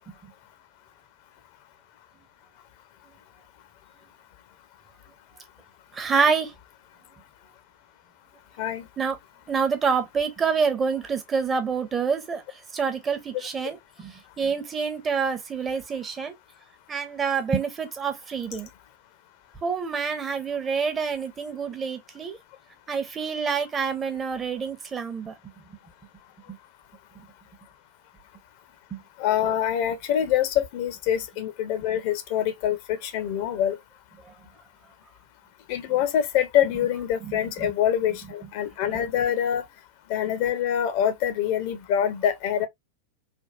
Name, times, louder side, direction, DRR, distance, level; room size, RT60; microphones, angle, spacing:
voice 1, 5.9-6.5 9.0-9.2 9.5-12.4 12.7-16.3 16.9-18.7 19.6-22.4 22.9-25.3 28.9-29.0 37.3-37.7, right 5 dB, 20° right, 0.7 m, -27 dB
voice 2, 29.2-33.8 35.7-39.7 40.1-42.7, left 10 dB, 45° left, 0.6 m, -25 dB
3.5 x 2.3 x 2.3 m
figure-of-eight pair, 90°, 0 cm